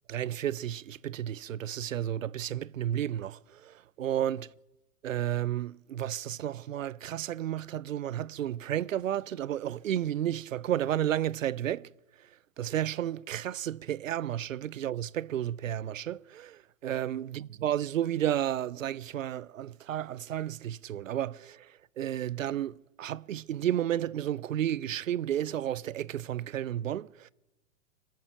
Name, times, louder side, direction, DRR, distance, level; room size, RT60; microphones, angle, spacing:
voice 1, 0.1-4.5 5.0-11.9 12.6-21.7 22.0-27.3, right 11 dB, 70° right, 0.5 m, -32 dB
26.5 x 9.1 x 5.7 m
figure-of-eight pair, 100°, 41 cm